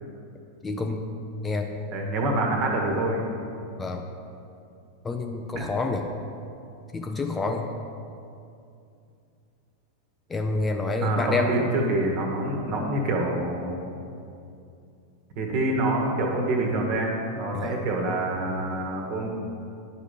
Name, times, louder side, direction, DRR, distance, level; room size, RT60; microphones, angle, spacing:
voice 1, 0.6-1.0 1.4-1.7 3.8-4.0 5.0-6.0 6.9-7.6 10.3-11.8 17.5-17.8, left 3 dB, 15° left, 4 dB, 0.5 m, -28 dB
voice 2, 1.9-3.3 5.5-5.6 11.0-13.8 15.3-19.3, right 1 dB, 45° right, 1 dB, 1.5 m, -26 dB
10.5 x 5.1 x 5.1 m, 2.5 s
figure-of-eight pair, 90°, 0 cm